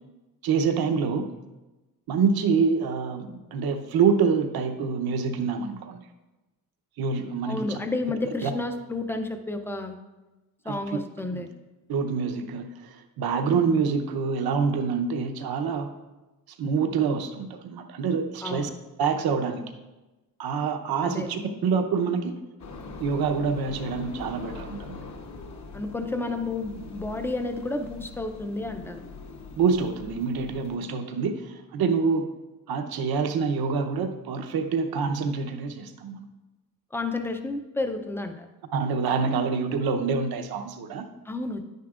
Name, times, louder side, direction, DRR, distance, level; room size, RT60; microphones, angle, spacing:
voice 1, 0.4-1.3 2.1-6.0 7.0-7.8 8.4-8.5 10.7-10.8 11.3-11.4 11.9-15.9 16.6-18.7 19.0-19.6 20.4-22.3 23.0-25.0 29.6-32.3 32.7-36.3 38.7-41.1, right 5 dB, 80° right, 7 dB, 0.9 m, -26 dB
voice 2, 7.5-10.0 10.6-11.5 18.4-18.7 21.0-21.3 25.7-29.0 36.9-38.5 41.3-41.6, left 2 dB, 5° left, 7 dB, 0.4 m, -31 dB
sound 1, 22.6-30.8, left 4 dB, 50° left, 0.9 m, -42 dB
10.5 x 9.3 x 2.4 m, 1.1 s
wide cardioid pair, 175°, 36 cm